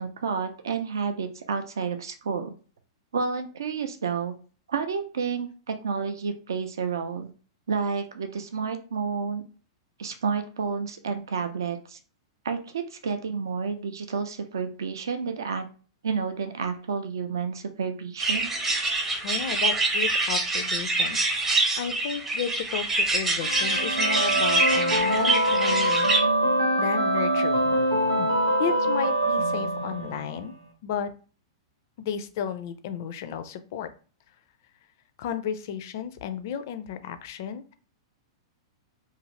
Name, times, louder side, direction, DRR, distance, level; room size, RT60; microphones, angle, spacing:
voice 1, 0.0-2.5 3.1-4.3 4.7-7.3 7.7-9.4 10.0-12.0 12.4-15.7 16.0-18.5, right 5 dB, 65° right, 7 dB, 0.4 m, -30 dB
sound 1, 18.2-26.2, right 2 dB, 15° right, 0.6 m, -25 dB
voice 2, 19.2-21.2 21.8-26.1 26.8-27.8 28.1-30.5 30.8-31.1 32.0-33.9 35.2-37.7, left 8 dB, 50° left, 10 dB, 0.4 m, -33 dB
sound 2, 23.4-30.4, right 1 dB, 85° right, 0.8 m, -24 dB
2.5 x 2.4 x 3.0 m, 0.38 s
figure-of-eight pair, 100°, 2 cm